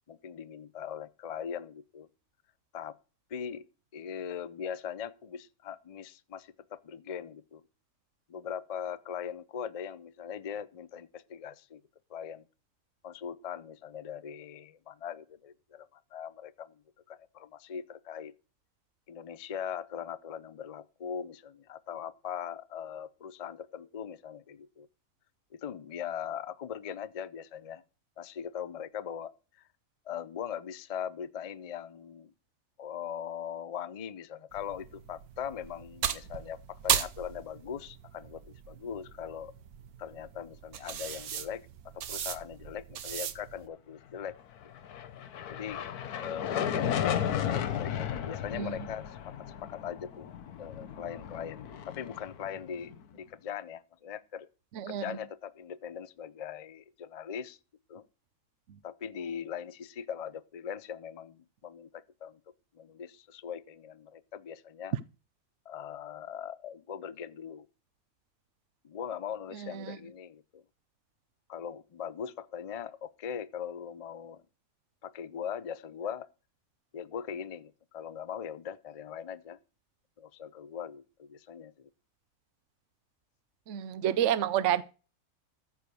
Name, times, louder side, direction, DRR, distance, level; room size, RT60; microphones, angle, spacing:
voice 1, 0.1-2.1 2.7-3.0 3.3-3.7 3.9-7.6 8.3-11.8 12.1-12.4 13.0-16.8 17.1-18.3 19.1-24.9 25.5-27.8 28.2-29.7 30.1-32.3 32.8-39.5 40.0-41.7 41.9-44.4 45.5-45.9 46.2-50.3 50.6-54.5 54.9-57.6 57.9-58.0 58.8-62.4 62.7-65.0 65.7-67.7 68.8-70.6 71.5-74.4 75.0-76.3 76.9-79.6 80.2-81.9, left 8 dB, 55° left, 0.4 m, -40 dB
sound 1, 34.5-43.7, right 9 dB, 80° right, 1.4 m, -37 dB
sound 2, 44.6-53.0, left 9 dB, 80° left, 1.4 m, -34 dB
voice 2, 69.6-70.0 83.7-84.8, right 10 dB, 60° right, 0.9 m, -29 dB
14.5 x 4.8 x 6.8 m
omnidirectional pair, 1.6 m